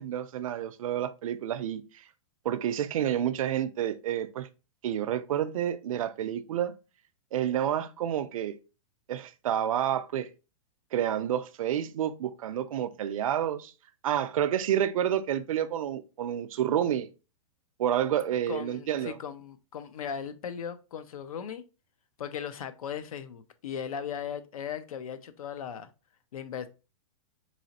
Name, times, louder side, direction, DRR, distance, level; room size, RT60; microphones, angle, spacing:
voice 1, 0.0-2.0 2.4-4.5 4.8-6.7 7.3-8.6 9.1-10.3 10.9-13.7 14.0-17.1 17.8-19.2, right 10 dB, 75° right, 0.5 m, -29 dB
voice 2, 18.5-21.6 22.2-25.9 26.3-26.7, left 8 dB, 90° left, 0.6 m, -37 dB
4.1 x 2.9 x 2.8 m
supercardioid pair, 170°, 18 cm